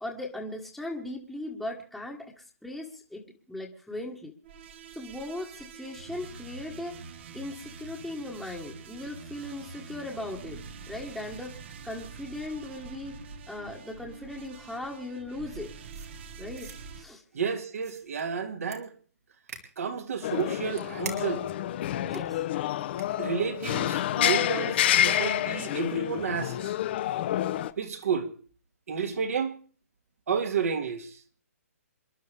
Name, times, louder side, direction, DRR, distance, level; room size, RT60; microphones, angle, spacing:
voice 1, 0.0-4.3 4.9-7.0 7.3-13.2 13.5-15.7 16.4-17.2 22.0-22.4, left 1 dB, ahead, 1.4 m, -38 dB
sound 1, 4.4-17.0, right 5 dB, 45° right, 1.3 m, -45 dB
sound 2, 15.9-16.8 17.7-18.2 18.7-18.8 19.5-19.6 20.3-21.5 22.1-22.2 23.0-23.1, right 5 dB, 85° right, 3.6 m, -43 dB
voice 2, 17.3-18.9 19.8-21.5 23.2-26.8 27.8-28.3 28.9-29.5 30.3-31.2, right 6 dB, 65° right, 2.1 m, -31 dB
sound 3, 20.2-27.7, left 12 dB, 45° left, 0.8 m, -28 dB
28.0 x 11.0 x 3.4 m
hypercardioid pair, 145°, 8 cm